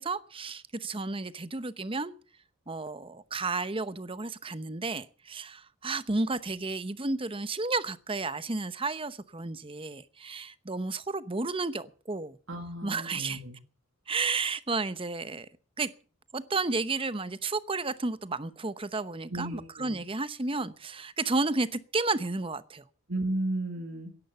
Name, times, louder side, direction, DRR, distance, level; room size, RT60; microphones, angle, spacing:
voice 1, 0.0-2.1 2.7-12.4 12.8-13.4 14.1-15.5 15.8-15.9 16.3-22.8, right 3 dB, 25° right, 0.8 m, -32 dB
voice 2, 12.5-13.6 19.3-20.0 23.1-24.1, right 1 dB, 65° right, 2.3 m, -34 dB
16.5 x 11.0 x 6.9 m
head